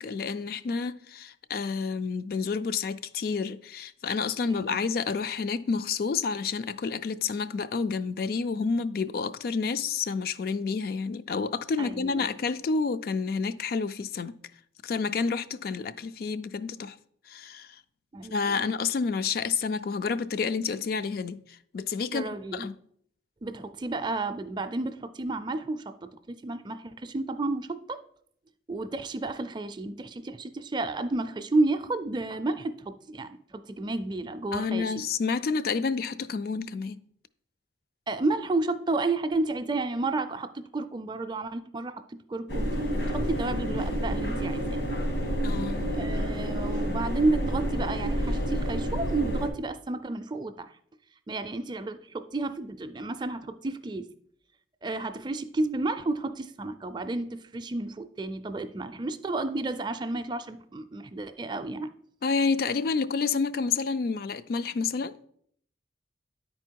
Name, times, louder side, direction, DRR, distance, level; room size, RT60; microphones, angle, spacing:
voice 1, 0.0-14.3 14.8-17.0 17.3-17.7 18.3-22.7 34.5-37.0 45.4-45.9 62.2-65.2, left 5 dB, 55° left, 0.3 m, -29 dB
voice 2, 4.4-4.8 11.8-12.3 18.1-18.6 22.1-22.7 23.4-28.0 28.7-35.0 38.1-42.7 43.0-44.8 45.9-50.7 51.3-54.1 54.8-61.9, right 2 dB, 25° right, 0.4 m, -31 dB
sound 1, 42.5-49.5, equal, 85° left, 1.7 m, -29 dB
9.8 x 4.3 x 4.5 m
head